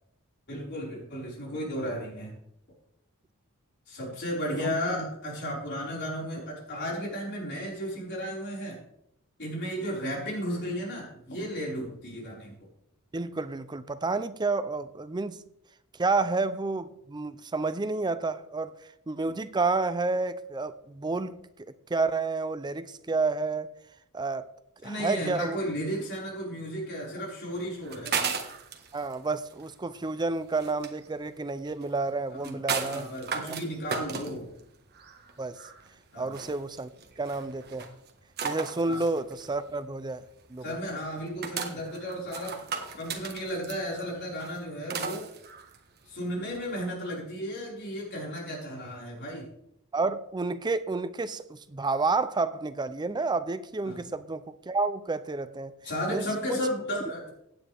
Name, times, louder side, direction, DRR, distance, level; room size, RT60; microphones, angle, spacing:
voice 1, 0.5-2.3 3.9-8.8 9.4-12.5 24.8-28.2 32.3-34.5 36.1-36.3 38.9-39.0 40.6-42.6 43.0-45.2 46.1-49.5 53.8-54.0 55.8-57.3, equal, 50° left, -3 dB, 5.0 m, -34 dB
voice 2, 13.1-15.4 16.0-18.7 19.1-21.4 21.9-23.7 24.1-24.5 24.8-25.6 28.9-33.1 33.4-33.6 35.4-35.6 36.2-36.9 37.2-38.0 38.4-40.8 49.9-55.7 56.1-56.6, right 3 dB, 20° right, 13 dB, 0.5 m, -30 dB
sound 1, 27.5-46.7, right 6 dB, 45° right, 1.5 m, -37 dB
16.0 x 9.9 x 3.5 m, 0.77 s
head